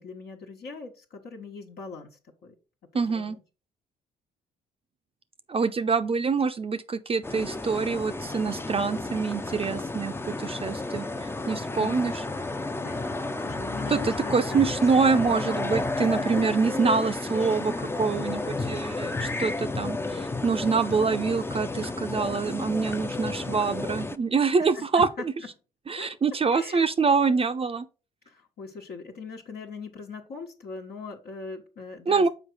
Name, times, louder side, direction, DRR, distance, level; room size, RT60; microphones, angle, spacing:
voice 1, 0.0-2.5 2.9-3.4 11.6-11.9 12.8-14.8 16.0-16.3 24.6-25.5 26.0-26.1 26.5-26.9 28.3-32.3, left 4 dB, 60° left, 1.3 m, -41 dB
voice 2, 2.9-3.4 5.5-10.1 10.4-12.1 13.9-25.1 25.9-27.9 32.1-32.3, right 5 dB, 30° right, 0.6 m, -25 dB
sound 1, 7.2-24.2, left 2 dB, 10° left, 0.6 m, -32 dB
6.3 x 4.6 x 4.0 m
hypercardioid pair, 55°, 18 cm